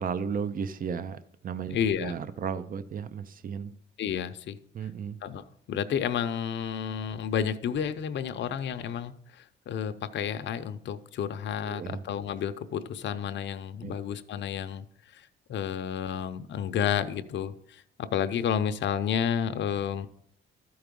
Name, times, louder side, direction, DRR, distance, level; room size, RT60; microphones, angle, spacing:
voice 1, 0.0-3.7 4.7-5.2 11.6-12.0 13.8-14.0, right 6 dB, 45° right, 13 dB, 0.6 m, -34 dB
voice 2, 1.7-2.1 4.0-4.6 5.2-14.9 15.1-20.1, left 8 dB, 65° left, 9 dB, 0.7 m, -31 dB
12.5 x 4.7 x 5.2 m, 0.67 s
cardioid pair, 90°, 20 cm